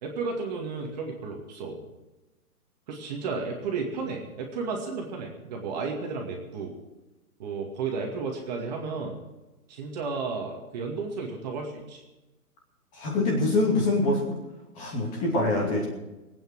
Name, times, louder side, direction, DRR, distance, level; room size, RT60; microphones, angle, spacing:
voice 1, 0.0-1.8 2.9-6.7 7.4-9.2 9.7-12.0, right 4 dB, 25° right, 1 dB, 2.3 m, -33 dB
voice 2, 13.0-14.3 14.8-15.9, left 2 dB, 15° left, -1 dB, 2.6 m, -24 dB
21.0 x 9.2 x 6.3 m, 1.1 s
hypercardioid pair, 165°, 46 cm